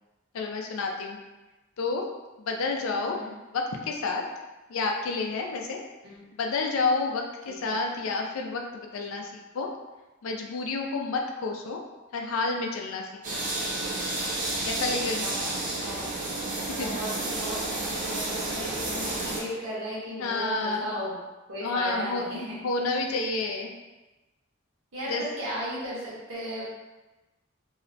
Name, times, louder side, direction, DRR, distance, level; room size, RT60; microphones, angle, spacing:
voice 1, 0.3-1.2 1.8-2.0 2.4-3.2 3.5-4.2 4.7-5.8 6.4-9.7 10.2-11.8 12.1-13.5 14.6-15.3 16.7-16.9 20.2-20.9 21.6-22.3 22.6-23.7 25.1-25.2, left 3 dB, 80° left, 2 dB, 0.4 m, -29 dB
sound 1, 13.2-19.4, right 2 dB, 40° right, 0.6 m, -31 dB
voice 2, 15.2-16.3 16.7-21.1 21.5-23.1 24.9-26.7, equal, 80° right, -7 dB, 1.0 m, -36 dB
2.7 x 2.0 x 2.6 m, 1.1 s
head